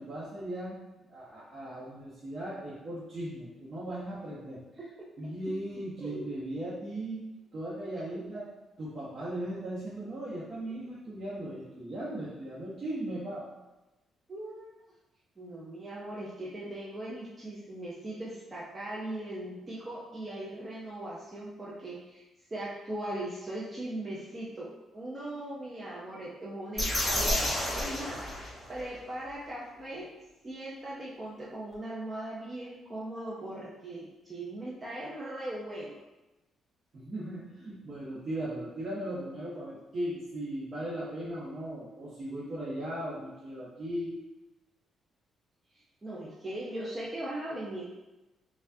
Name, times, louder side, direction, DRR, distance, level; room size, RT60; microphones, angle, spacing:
voice 1, 0.0-4.6 5.2-7.2 7.5-8.5 8.8-13.5 36.9-44.2, right 1 dB, 45° right, -10 dB, 1.0 m, -38 dB
voice 2, 6.0-6.3 7.9-8.0 12.0-12.2 14.3-14.8 15.4-22.2 22.5-24.7 24.9-28.2 28.7-30.1 30.4-36.0 46.0-47.8, right 1 dB, 25° right, -6 dB, 0.6 m, -39 dB
sound 1, 26.8-28.9, left 1 dB, 10° left, 1.3 m, -30 dB
4.4 x 2.4 x 2.7 m, 1.0 s
cardioid pair, 90°, 0 cm